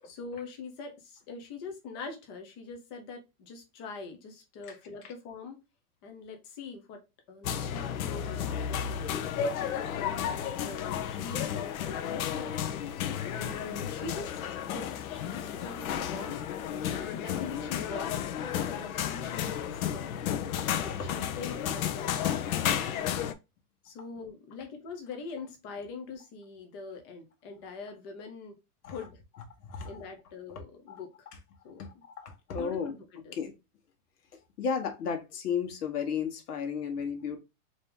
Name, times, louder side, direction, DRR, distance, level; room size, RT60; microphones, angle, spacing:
voice 1, 0.0-5.6 6.0-9.7 10.3-12.5 13.0-16.4 16.9-18.3 18.6-20.2 20.8-23.0 23.8-28.6 28.9-29.2 29.9-31.1 31.6-31.8 32.5-33.4, left 4 dB, 20° left, 0.4 m, -43 dB
sound 1, 7.4-23.3, left 9 dB, 65° left, 0.7 m, -33 dB
voice 2, 20.6-21.1 28.8-29.0 29.6-30.0 30.9-31.0 31.8-32.9 33.3-33.5 34.6-37.4, left 6 dB, 80° left, 1.3 m, -34 dB
4.1 x 2.7 x 3.6 m
supercardioid pair, 160°, 45 cm